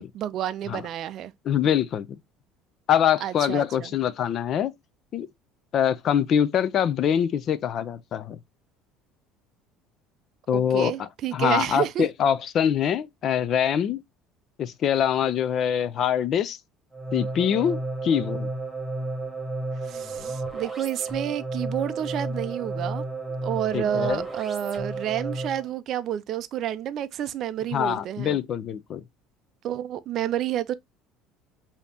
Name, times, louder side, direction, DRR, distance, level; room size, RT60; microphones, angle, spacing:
voice 1, 0.0-1.3 3.2-3.9 10.5-12.1 19.8-23.0 23.4-28.4 29.6-30.7, right 11 dB, 50° right, 0.4 m, -30 dB
voice 2, 1.5-2.2 2.9-4.7 5.1-5.3 5.7-8.4 10.5-14.0 14.6-16.6 17.1-18.5 23.7-24.2 27.7-29.0, left 9 dB, 45° left, 0.4 m, -24 dB
sound 1, 16.9-25.7, right 2 dB, 10° right, 1.0 m, -32 dB
5.2 x 2.8 x 2.8 m
cardioid pair, 135°, 0 cm